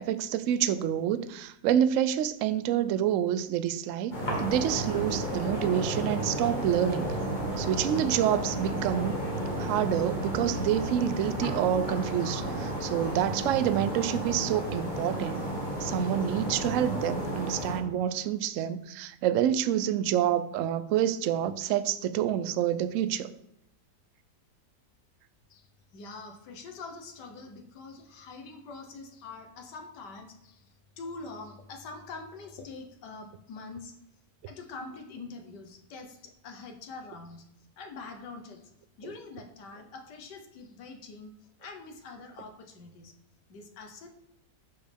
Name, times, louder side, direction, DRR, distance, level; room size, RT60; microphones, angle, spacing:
voice 1, 0.0-7.2 7.6-9.2 9.6-15.4 15.8-23.3, right 10 dB, 70° right, 0.8 m, -28 dB
sound 1, 4.1-17.8, right 1 dB, 25° left, 2.0 m, -32 dB
voice 2, 25.5-34.0 34.5-37.5 37.8-38.7 39.0-41.3 41.6-43.1 43.5-44.1, left 3 dB, 85° left, 1.7 m, -44 dB
11.0 x 5.1 x 3.5 m
omnidirectional pair, 1.8 m